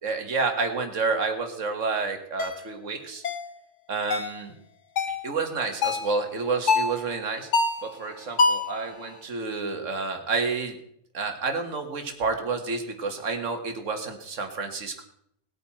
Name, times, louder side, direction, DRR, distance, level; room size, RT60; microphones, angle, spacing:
voice 1, 0.0-3.2 3.9-4.5 5.1-7.5 7.8-10.8 11.1-15.0, right 4 dB, 70° right, 6 dB, 2.0 m, -29 dB
sound 1, 2.4-2.6 3.2-3.5 4.1-4.4 5.0-5.2 5.8-6.1 6.7-7.0 7.5-7.9 8.4-8.7, left 3 dB, 65° left, 1.4 m, -24 dB
19.0 x 8.8 x 4.3 m, 0.70 s
omnidirectional pair, 1.4 m